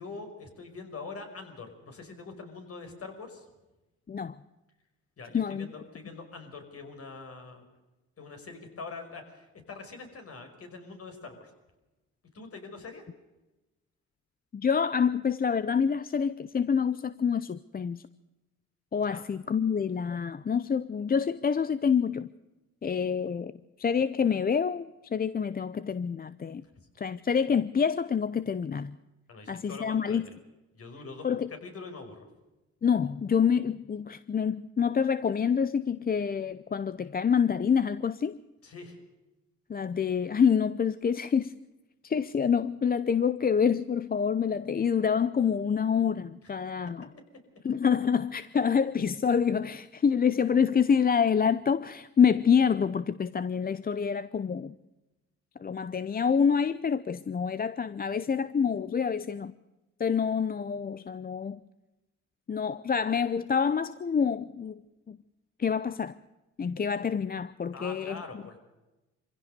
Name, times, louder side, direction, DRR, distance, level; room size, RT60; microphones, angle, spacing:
voice 1, 0.0-3.4 5.2-7.6 8.2-11.5 12.3-13.1 19.1-19.3 29.3-30.3 30.8-32.2 38.6-39.0 67.7-68.6, left 4 dB, 50° left, 5 dB, 5.5 m, -44 dB
voice 2, 5.3-5.7 14.5-18.0 18.9-22.3 22.8-23.5 23.8-26.6 27.0-28.9 29.5-30.3 31.2-31.5 32.8-38.4 39.7-41.5 42.0-47.1 47.6-54.7 55.6-59.5 60.0-61.6 62.5-64.8 65.1-65.2 65.6-66.2 66.6-68.2, left 6 dB, 30° left, 15 dB, 0.7 m, -27 dB
24.5 x 16.0 x 6.7 m, 1.0 s
cardioid pair, 90°, 30 cm